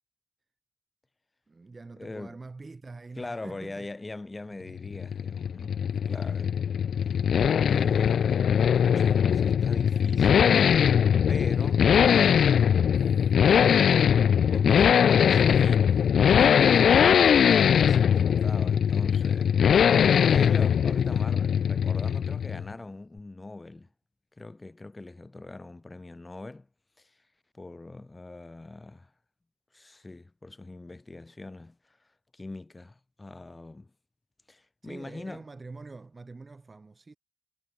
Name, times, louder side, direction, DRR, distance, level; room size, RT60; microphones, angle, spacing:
voice 1, 1.5-3.9 4.6-4.7 5.7-6.6 14.8-15.8 34.8-37.2, right 3 dB, 25° right, 5.0 m, -46 dB
voice 2, 2.0-2.3 3.2-6.5 7.6-10.9 11.3-13.0 14.5-15.8 16.2-19.6 20.1-23.9 24.4-26.7 27.0-27.2 27.5-29.1 29.7-32.0 32.3-33.9 34.5-35.4, left 2 dB, 15° left, 1.5 m, -42 dB
sound 1, 4.7-22.7, left 8 dB, 70° left, 0.3 m, -21 dB
wide cardioid pair, 180°, 0 cm